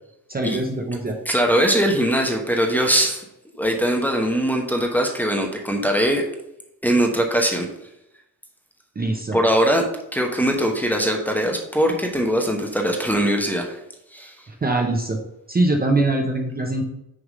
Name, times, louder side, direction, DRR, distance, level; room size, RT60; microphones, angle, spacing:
voice 1, 0.3-1.2 9.0-9.4 14.5-15.2 15.5-16.8, right 2 dB, 25° right, 2 dB, 0.8 m, -22 dB
voice 2, 1.3-3.2 3.5-6.2 6.8-7.7 9.3-9.8 10.1-13.8 14.1-14.3, equal, 5° left, 1 dB, 0.9 m, -21 dB
6.5 x 3.6 x 6.1 m, 0.82 s
wide cardioid pair, 155°, 40 cm